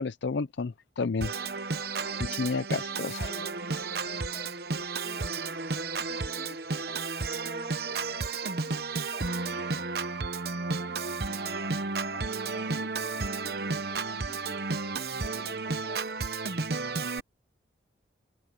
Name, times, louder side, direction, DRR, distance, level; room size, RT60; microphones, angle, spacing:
voice 1, 0.0-1.3 2.4-3.3, left 4 dB, 70° left, 0.5 m, -31 dB
Organ, 1.2-17.2, right 4 dB, 55° right, 0.9 m, -32 dB
voice 2, 2.0-5.3 6.0-7.0 7.4-9.9 10.5-16.2, left 1 dB, 40° left, 2.8 m, -51 dB
open air
head